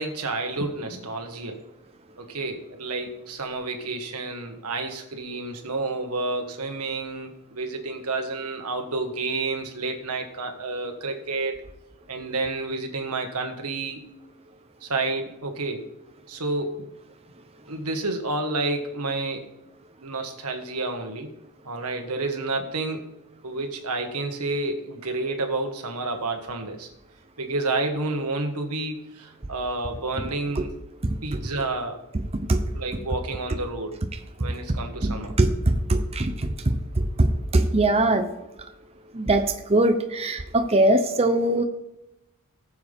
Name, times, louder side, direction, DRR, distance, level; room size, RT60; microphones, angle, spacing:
voice 1, 0.0-1.6 2.2-11.6 12.1-14.0 14.8-15.9 16.3-16.9 17.7-19.5 20.0-21.3 21.6-23.0 23.4-26.9 27.4-30.7 31.2-32.0 32.7-33.9 34.4-35.3, right 3 dB, 85° right, 4 dB, 1.7 m, -30 dB
voice 2, 31.0-31.4 32.5-32.6 35.0-38.3 39.1-39.4 39.7-41.6, right 1 dB, 25° right, 6 dB, 0.7 m, -22 dB
19.0 x 7.1 x 3.6 m, 0.91 s
head